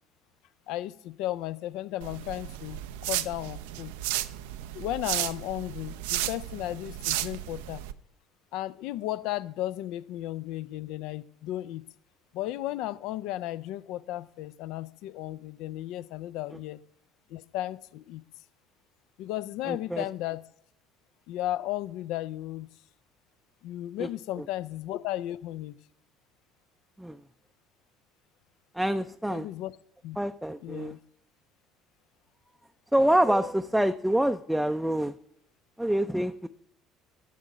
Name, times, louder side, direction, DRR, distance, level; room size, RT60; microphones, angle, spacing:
voice 1, 0.7-3.9 4.7-7.8 8.5-11.8 12.3-16.8 17.3-18.2 19.2-20.4 21.3-22.7 23.6-25.8 29.3-29.7 30.0-30.2 30.6-31.0, left 14 dB, 60° left, 16 dB, 0.4 m, -34 dB
sound 1, 2.0-7.9, right 14 dB, 70° right, 0.4 m, -34 dB
voice 2, 19.7-20.0 24.0-24.1 27.0-27.2 28.7-29.5 30.2-31.0 32.9-35.1 35.8-36.5, right 1 dB, 5° right, 7 dB, 0.4 m, -26 dB
11.0 x 5.5 x 5.0 m, 0.69 s
figure-of-eight pair, 60°, 0 cm